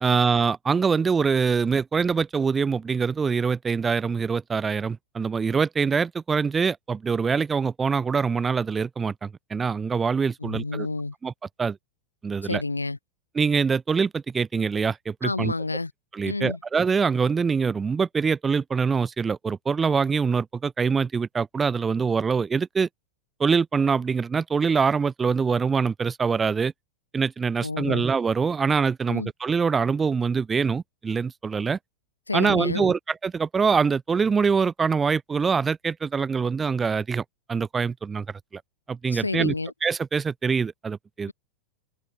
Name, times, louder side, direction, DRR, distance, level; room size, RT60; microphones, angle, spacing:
voice 1, 0.0-10.9 11.2-11.3 11.6-11.8 12.2-12.6 13.3-15.5 16.1-22.9 23.4-26.7 27.1-31.8 32.3-37.2 37.5-38.3 38.5-38.6 38.9-39.5 39.8-41.3, right 5 dB, 15° right, 0.7 m, -24 dB
voice 2, 10.4-11.1 12.4-13.0 15.2-15.9 16.2-16.6 27.6-28.1 29.1-29.3 32.3-32.9 39.1-39.7, left 3 dB, 80° left, 3.7 m, -29 dB
figure-of-eight pair, 90°, 0 cm